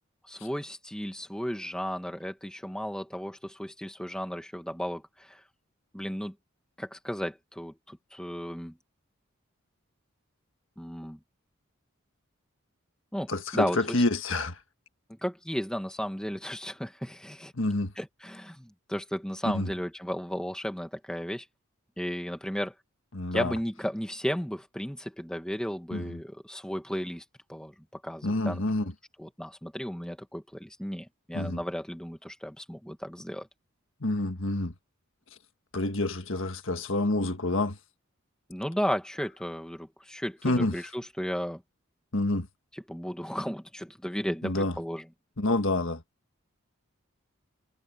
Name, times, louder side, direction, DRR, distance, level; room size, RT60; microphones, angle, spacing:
voice 1, 0.2-5.4 5.9-6.3 6.8-8.8 10.8-11.2 13.1-14.0 15.1-17.5 18.0-21.5 22.0-22.7 23.3-27.2 27.5-28.6 29.2-33.5 38.5-41.6 42.7-45.1, equal, 5° left, 2.0 m, -34 dB
voice 2, 13.3-14.5 17.6-17.9 19.5-19.7 23.1-23.5 25.9-26.2 28.2-28.9 31.3-31.6 34.0-34.7 35.7-37.8 40.4-40.7 42.1-42.5 44.4-44.7 45.4-46.0, left 2 dB, 70° left, 1.6 m, -28 dB
head